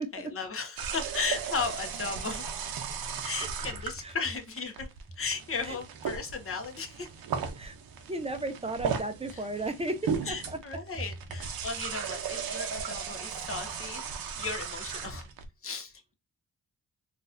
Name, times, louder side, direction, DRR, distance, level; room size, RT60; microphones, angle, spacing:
voice 1, 0.0-2.4 3.2-4.9 5.2-7.1 9.3-9.5 10.2-14.1 14.4-15.3 15.6-16.1, left 4 dB, 40° left, 1.0 m, -36 dB
sound 1, 0.8-15.4, right 6 dB, 75° right, 0.8 m, -36 dB
voice 2, 8.1-10.6, right 2 dB, 15° right, 0.6 m, -34 dB
3.9 x 2.5 x 2.5 m
cardioid pair, 90°, 36 cm